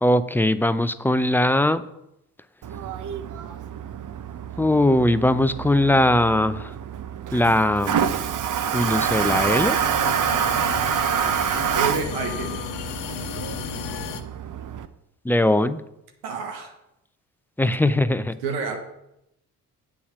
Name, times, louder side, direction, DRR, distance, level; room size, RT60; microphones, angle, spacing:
voice 1, 0.0-1.8 4.6-6.7 7.3-8.2 8.7-9.9 15.2-15.8 17.6-18.4, left 1 dB, 5° left, 13 dB, 0.5 m, -20 dB
Toilet flush, 2.6-14.9, right 8 dB, 40° right, 0.8 m, -27 dB
sound 1, 8.7-14.2, left 8 dB, 65° left, 1.1 m, -33 dB
voice 2, 11.7-12.7 16.2-16.7 17.8-17.9 18.4-18.8, right 5 dB, 80° right, 4 dB, 1.3 m, -29 dB
8.6 x 7.1 x 6.0 m, 0.83 s
hypercardioid pair, 45°, 47 cm